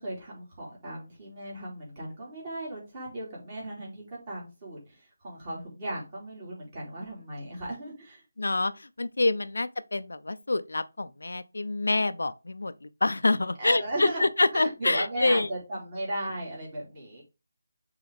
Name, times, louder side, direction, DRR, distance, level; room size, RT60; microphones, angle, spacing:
voice 1, 0.0-8.2 13.6-14.2 14.5-17.2, right 1 dB, 25° right, 3.1 m, -36 dB
voice 2, 8.4-15.5, left 2 dB, 85° left, 0.5 m, -27 dB
7.0 x 3.8 x 3.5 m
figure-of-eight pair, 170°, 0 cm